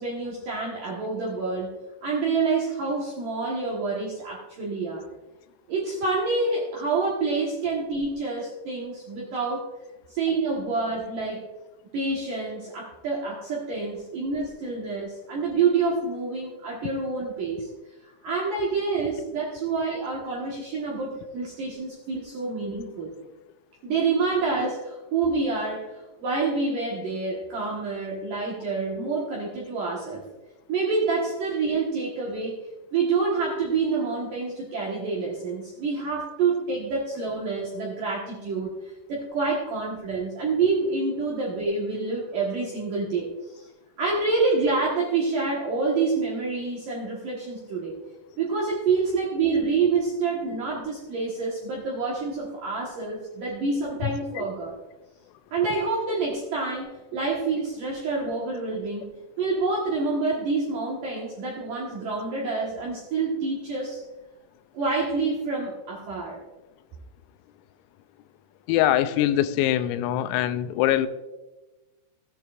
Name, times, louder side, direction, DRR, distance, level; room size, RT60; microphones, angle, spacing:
voice 1, 0.0-1.7 2.0-5.1 5.7-9.7 10.1-11.5 11.9-17.7 18.2-23.1 23.8-25.9 26.2-30.2 30.7-32.6 32.9-38.7 39.1-43.7 44.0-48.0 48.4-54.7 55.5-59.1 59.4-64.0 64.7-66.4, right 4 dB, 70° right, -4 dB, 2.0 m, -27 dB
voice 2, 68.7-71.1, left 12 dB, 85° left, 11 dB, 3.2 m, -23 dB
16.0 x 9.1 x 2.4 m, 1.1 s
omnidirectional pair, 5.9 m